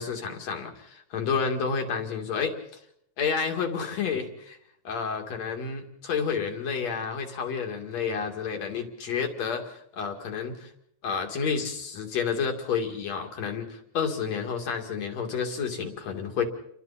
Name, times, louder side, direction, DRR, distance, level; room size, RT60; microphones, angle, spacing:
voice 1, 0.0-2.5 3.2-4.6 4.8-10.7 11.0-16.4, left 6 dB, 65° left, 4 dB, 3.5 m, -30 dB
30.0 x 23.5 x 4.3 m, 0.70 s
omnidirectional pair, 3.4 m